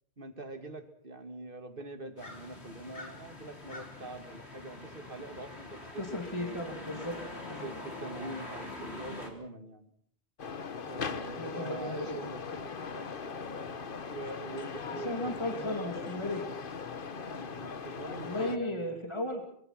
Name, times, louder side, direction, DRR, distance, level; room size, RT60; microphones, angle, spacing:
voice 1, 0.2-6.0 6.4-6.6 7.6-9.9 10.8-12.4 14.1-16.4 17.2-18.9, right 2 dB, 55° right, 7 dB, 2.6 m, -44 dB
sound 1, 2.2-9.3, left 2 dB, 85° left, 4.0 m, -44 dB
voice 2, 6.0-7.1 7.5-7.7 11.4-13.1 15.0-16.4 18.2-19.4, left 1 dB, 25° left, 3 dB, 3.0 m, -36 dB
sound 2, 10.4-18.6, left 5 dB, 55° left, 1.3 m, -39 dB
25.0 x 22.5 x 6.0 m, 0.63 s
omnidirectional pair, 1.1 m